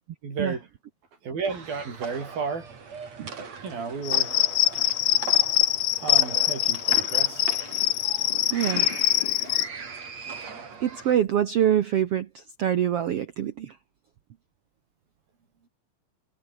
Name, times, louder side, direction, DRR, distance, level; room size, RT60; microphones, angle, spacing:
voice 1, 0.2-0.7 1.2-2.7 3.2-4.4 6.0-7.5, right 5 dB, 85° right, 7.8 m, -33 dB
sound 1, 1.5-11.1, right 5 dB, 50° right, 4.9 m, -40 dB
Cricket, 4.0-9.7, left 15 dB, 75° left, 2.6 m, -23 dB
voice 2, 8.5-8.9 10.2-10.3 10.8-13.7, right 10 dB, 70° right, 1.4 m, -25 dB
omnidirectional pair, 4.0 m